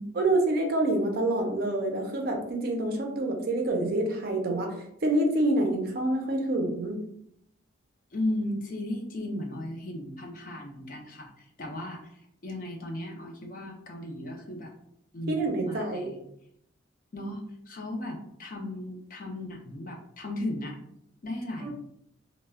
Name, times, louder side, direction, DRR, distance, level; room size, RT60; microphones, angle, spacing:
voice 1, 0.2-4.7 5.0-7.0 15.3-16.1 21.6-21.7, right 1 dB, 50° right, 3 dB, 0.5 m, -27 dB
voice 2, 8.1-12.1 12.4-14.7 15.1-16.3 17.1-20.8 21.2-21.7, left 1 dB, 45° left, 2 dB, 0.4 m, -36 dB
2.2 x 2.0 x 3.3 m, 0.74 s
head